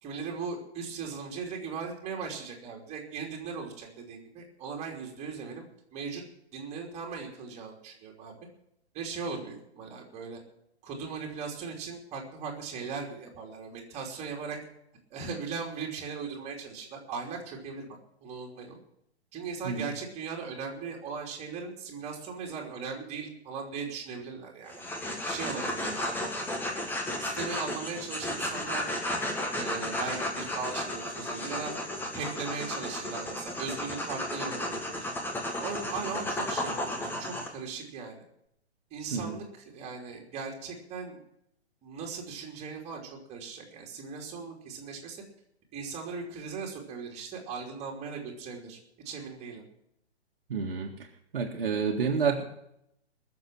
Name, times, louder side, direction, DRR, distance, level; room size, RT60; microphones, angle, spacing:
voice 1, 0.0-5.7 5.9-6.2 6.5-8.4 8.9-10.4 10.8-14.6 15.1-18.8 19.3-24.7 25.2-26.0 27.2-28.9 29.5-31.7 32.1-35.1 35.6-38.2 38.9-41.2 41.8-45.2 45.7-48.8 49.1-49.6, right 5 dB, 20° right, 1 dB, 3.3 m, -38 dB
sound 1, 24.7-37.5, left 1 dB, 5° left, 1.7 m, -34 dB
voice 2, 50.5-50.9 51.3-52.4, right 5 dB, 55° right, 2 dB, 1.9 m, -29 dB
21.5 x 7.2 x 7.6 m, 0.77 s
figure-of-eight pair, 125°, 33 cm